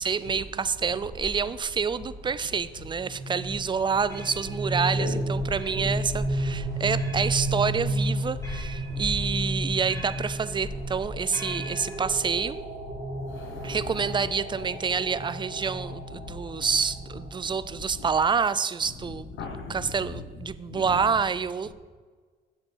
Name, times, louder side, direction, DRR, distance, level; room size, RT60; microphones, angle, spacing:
voice 1, 0.0-12.6 13.6-21.7, right 6 dB, 25° right, 0.4 m, -28 dB
sound 1, 0.7-12.3, left 1 dB, 15° left, 2.3 m, -40 dB
sound 2, 2.8-17.7, right 1 dB, 40° right, 2.2 m, -33 dB
voice 2, 13.3-14.1 16.2-16.7 18.0-18.1 19.4-20.2 20.7-21.0, left 4 dB, 80° left, 1.3 m, -38 dB
7.8 x 7.3 x 4.6 m
cardioid pair, 90°, 20 cm